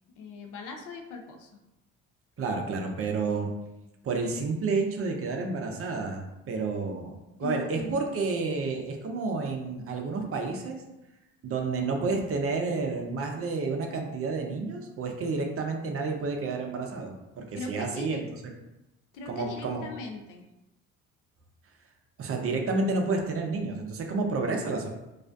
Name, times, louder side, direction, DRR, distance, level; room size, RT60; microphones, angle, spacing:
voice 1, 0.2-1.5 2.6-3.0 7.4-8.2 17.5-18.2 19.1-20.5, left 3 dB, 65° left, 3 dB, 0.5 m, -40 dB
voice 2, 2.4-3.5 4.0-7.1 7.4-10.8 11.4-18.2 19.3-19.9 22.2-24.9, right 3 dB, 40° right, 2 dB, 0.5 m, -30 dB
2.4 x 2.1 x 2.5 m, 0.96 s
hypercardioid pair, 60°, 34 cm